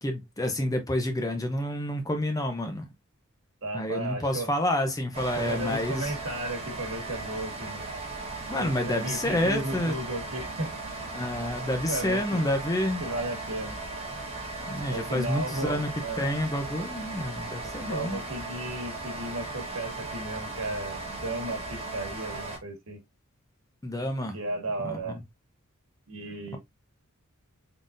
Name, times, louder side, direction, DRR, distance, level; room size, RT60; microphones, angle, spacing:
voice 1, 0.0-2.9 3.7-6.1 8.5-9.9 11.1-13.0 14.7-15.9 16.2-18.2 23.8-24.4 24.8-25.0, left 1 dB, 15° left, 0.6 m, -29 dB
voice 2, 3.6-4.5 5.3-7.9 8.5-10.7 11.9-12.4 13.0-13.8 14.9-16.3 17.6-23.0 24.3-25.2 26.1-26.6, right 2 dB, 70° right, 1.5 m, -35 dB
sound 1, 5.1-22.6, right 2 dB, 30° right, 1.1 m, -37 dB
3.9 x 3.8 x 2.5 m
head